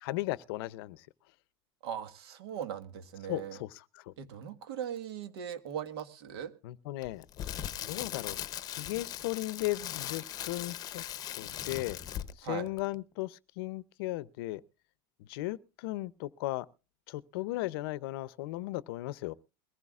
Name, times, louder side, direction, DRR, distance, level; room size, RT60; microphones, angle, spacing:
voice 1, 0.0-1.0 3.3-4.1 6.6-7.3 7.8-8.4 8.7-11.0 11.4-12.0 12.4-14.6 15.3-16.7 17.1-19.3, left 18 dB, 70° left, 0.6 m, -36 dB
voice 2, 1.8-3.6 4.2-6.5 12.4-12.7, right 9 dB, 85° right, 1.5 m, -39 dB
Crackle, 7.0-12.5 12.8-13.0, left 12 dB, 30° left, 0.7 m, -39 dB
22.0 x 15.0 x 2.4 m
supercardioid pair, 160°, 13 cm